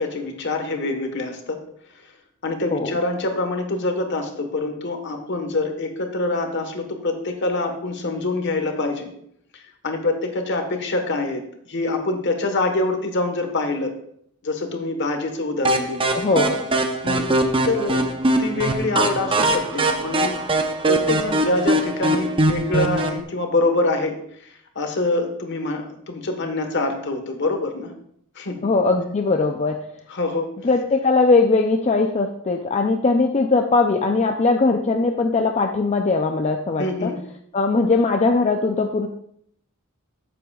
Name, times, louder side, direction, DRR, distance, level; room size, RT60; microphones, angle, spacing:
voice 1, 0.0-1.6 1.9-2.0 2.4-9.1 9.5-13.9 14.4-16.1 17.0-17.3 17.6-18.1 18.4-20.5 20.8-24.5 24.7-27.9 28.3-28.7 30.1-30.5 36.8-37.2, left 2 dB, 55° left, 5 dB, 1.4 m, -25 dB
sound 1, 15.6-23.2, right 2 dB, 25° right, 0.7 m, -22 dB
voice 2, 16.1-16.7 28.6-29.8 30.6-37.1 37.5-39.1, left 3 dB, 30° left, 3 dB, 0.5 m, -20 dB
14.0 x 7.7 x 2.4 m, 0.68 s
head